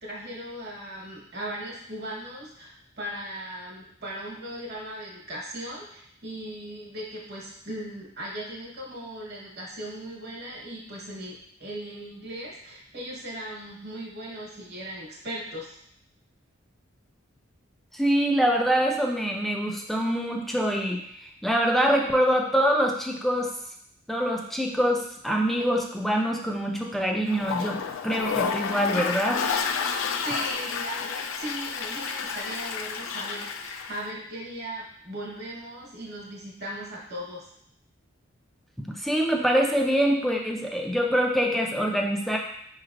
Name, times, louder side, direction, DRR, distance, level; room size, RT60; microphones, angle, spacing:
voice 1, 0.0-15.8 30.2-37.5, right 1 dB, 55° right, -3 dB, 1.1 m, -38 dB
voice 2, 17.9-23.5 24.1-29.4 38.8-42.4, equal, ahead, 0 dB, 0.3 m, -25 dB
Toilet flush, 27.3-34.0, left 6 dB, 90° left, 0.4 m, -30 dB
5.0 x 3.1 x 2.5 m, 0.71 s
head